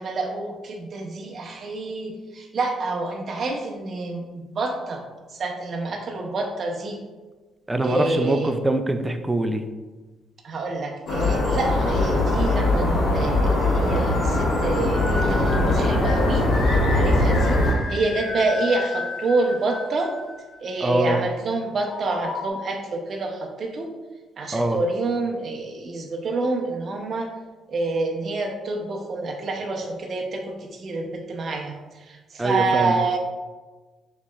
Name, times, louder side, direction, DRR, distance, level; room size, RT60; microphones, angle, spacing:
voice 1, 0.0-5.0 5.3-7.0 7.8-8.5 10.4-20.1 20.6-23.9 24.4-27.3 27.7-33.2, right 3 dB, 45° right, 1 dB, 0.7 m, -27 dB
voice 2, 7.7-9.6 20.8-21.2 24.5-24.8 32.4-32.9, right 1 dB, 15° right, 7 dB, 0.3 m, -23 dB
sound 1, 11.1-17.7, left 2 dB, 75° left, 1.4 m, -21 dB
sound 2, 13.5-20.7 21.9-22.5, left 3 dB, 50° left, 0.6 m, -34 dB
6.5 x 3.0 x 2.4 m, 1.3 s
cardioid pair, 130°, 0 cm